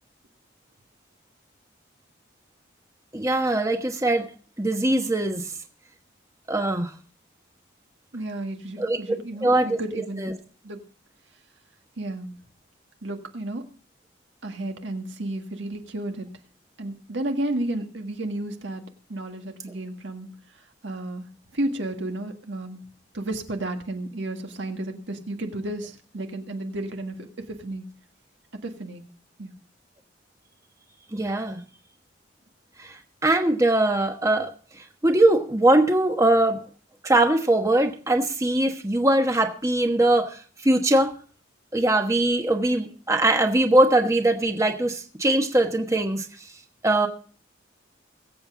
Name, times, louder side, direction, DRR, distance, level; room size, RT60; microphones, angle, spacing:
voice 1, 3.1-4.3 4.6-5.5 6.5-6.9 8.8-9.2 9.4-9.8 10.2-10.3 31.1-31.6 32.8-34.5 34.8-36.6 37.0-41.1 41.7-46.3 46.8-47.1, right 1 dB, 15° right, 5 dB, 1.1 m, -21 dB
voice 2, 8.1-10.3 10.6-10.8 12.0-12.4 13.0-13.7 14.4-16.3 16.8-21.3 21.5-22.8 23.1-27.9 28.6-29.0 29.4-29.5, right 1 dB, 75° right, 4 dB, 1.7 m, -32 dB
22.0 x 8.0 x 3.7 m, 0.41 s
head